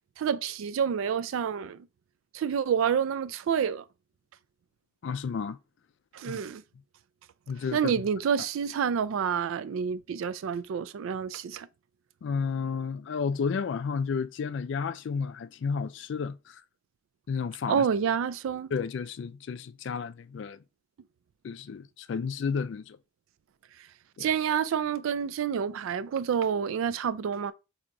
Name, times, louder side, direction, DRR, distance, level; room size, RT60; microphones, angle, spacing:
voice 1, 0.2-1.9 2.3-3.8 6.1-6.6 7.7-11.7 17.7-18.7 24.2-27.5, right 7 dB, 75° right, 0.3 m, -28 dB
voice 2, 5.0-5.6 6.3-6.4 7.5-7.9 12.2-16.6 17.3-17.8 18.7-20.6 21.4-23.0 24.2-24.3, left 5 dB, 60° left, 0.3 m, -32 dB
4.5 x 2.8 x 2.5 m
head